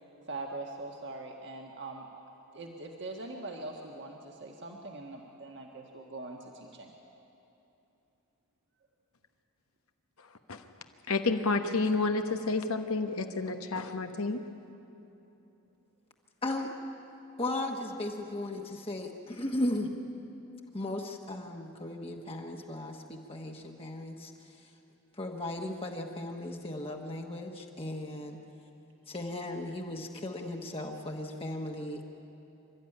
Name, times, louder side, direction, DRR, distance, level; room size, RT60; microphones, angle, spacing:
voice 1, 0.3-2.1 2.5-6.9 12.3-12.5, right 2 dB, 50° right, 1 dB, 1.6 m, -42 dB
voice 2, 11.1-14.4, left 3 dB, 75° left, 6 dB, 1.2 m, -30 dB
voice 3, 17.4-19.9 20.7-24.3 25.2-28.4 29.1-32.1, left 1 dB, 25° left, 1 dB, 1.3 m, -36 dB
27.5 x 13.0 x 9.9 m, 3.0 s
head